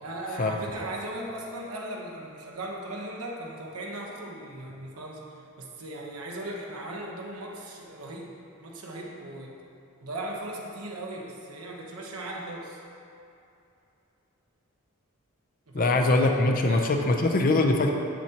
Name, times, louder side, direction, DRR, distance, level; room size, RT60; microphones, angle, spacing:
voice 1, 0.0-5.2 5.6-9.6 10.0-12.8 15.7-16.1 16.5-17.0, right 1 dB, 90° right, -1 dB, 1.0 m, -38 dB
voice 2, 15.7-17.9, left 2 dB, 40° left, 3 dB, 0.5 m, -22 dB
7.7 x 7.1 x 2.9 m, 2.7 s
head